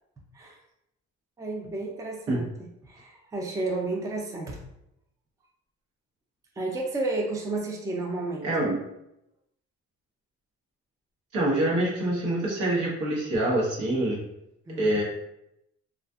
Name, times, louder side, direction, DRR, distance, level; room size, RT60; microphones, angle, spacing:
voice 1, 1.4-4.6 6.6-8.5 14.7-15.0, right 2 dB, 10° right, 0 dB, 0.4 m, -32 dB
voice 2, 8.4-8.8 11.3-14.2 14.8-15.0, right 1 dB, 75° right, -3 dB, 1.0 m, -25 dB
2.6 x 2.3 x 2.3 m, 0.82 s
cardioid pair, 90°, 30 cm